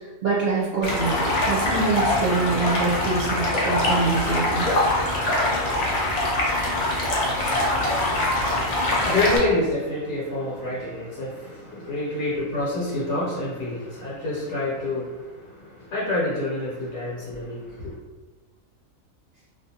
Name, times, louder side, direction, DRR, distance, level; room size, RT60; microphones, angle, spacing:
voice 1, 0.0-4.7, right 3 dB, 60° right, -6 dB, 0.7 m, -25 dB
Stream, 0.8-9.4, left 1 dB, 60° left, 0.4 m, -23 dB
voice 2, 7.6-18.0, left 2 dB, 75° left, -7 dB, 1.1 m, -28 dB
2.4 x 2.4 x 2.7 m, 1.2 s
omnidirectional pair, 1.4 m